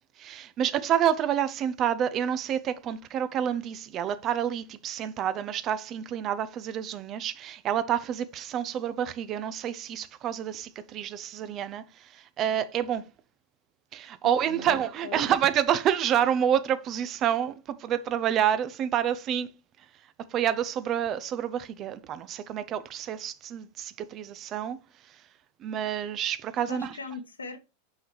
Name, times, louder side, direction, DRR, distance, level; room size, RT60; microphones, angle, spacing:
voice 1, 0.2-13.0 13.9-19.5 20.3-24.8 25.6-27.0, right 9 dB, 35° right, 0.7 m, -28 dB
voice 2, 14.2-15.3 26.7-27.6, left 5 dB, 75° left, 1.2 m, -40 dB
6.1 x 5.7 x 3.3 m
figure-of-eight pair, 90°, 0 cm